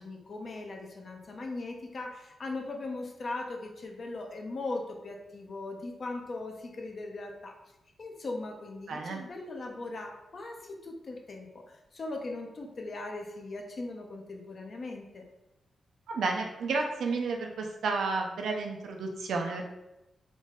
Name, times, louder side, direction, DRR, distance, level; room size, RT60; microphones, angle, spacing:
voice 1, 0.0-7.5 8.0-15.3, left 2 dB, 50° left, 2 dB, 0.8 m, -39 dB
voice 2, 8.9-9.2 16.1-19.7, right 3 dB, 85° right, 2 dB, 0.6 m, -31 dB
3.8 x 3.1 x 3.7 m, 0.93 s
cardioid pair, 95°, 0 cm